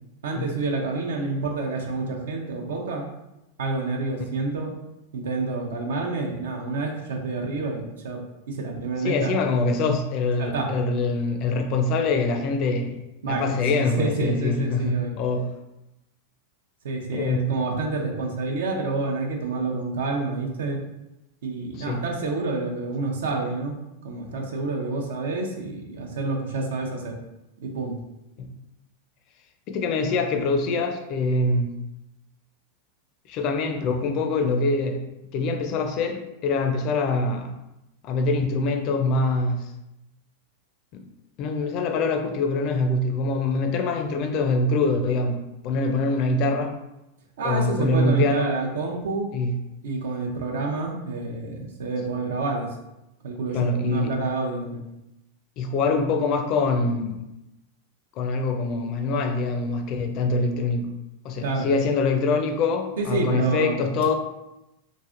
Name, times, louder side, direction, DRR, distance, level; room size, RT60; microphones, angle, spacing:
voice 1, 0.2-3.0 3.6-4.7 5.1-8.2 8.5-9.4 10.4-10.7 13.2-13.5 14.0-15.1 16.8-20.8 21.4-23.7 24.0-27.1 27.6-27.9 47.4-49.3 49.8-52.7 53.2-54.8 61.4-61.7 63.0-63.8, right 3 dB, 80° right, 1 dB, 0.6 m, -28 dB
voice 2, 9.0-15.5 17.1-17.5 21.8-22.0 28.4-28.5 29.7-31.7 33.3-35.0 35.3-37.5 38.0-39.7 40.9-41.0 41.4-46.8 47.4-48.6 49.3-49.5 53.5-54.1 55.6-57.2 58.2-60.9 61.2-64.1, left 3 dB, 45° left, 6 dB, 0.4 m, -24 dB
3.1 x 2.5 x 2.5 m, 0.91 s
hypercardioid pair, 125°, 0 cm